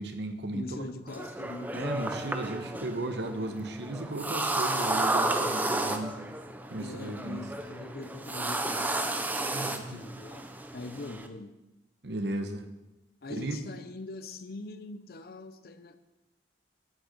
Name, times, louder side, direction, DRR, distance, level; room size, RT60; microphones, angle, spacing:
voice 1, 0.0-0.9 1.7-6.1 6.7-7.4 9.5-10.0 12.0-12.7 13.3-13.6, right 2 dB, 70° right, 7 dB, 1.0 m, -35 dB
voice 2, 0.5-2.0 6.8-9.2 9.6-10.5 10.7-11.6 13.2-16.0, left 2 dB, 55° left, 10 dB, 0.6 m, -42 dB
sound 1, 1.1-11.3, right 2 dB, 10° right, 0.5 m, -32 dB
10.5 x 6.5 x 5.1 m, 0.99 s
head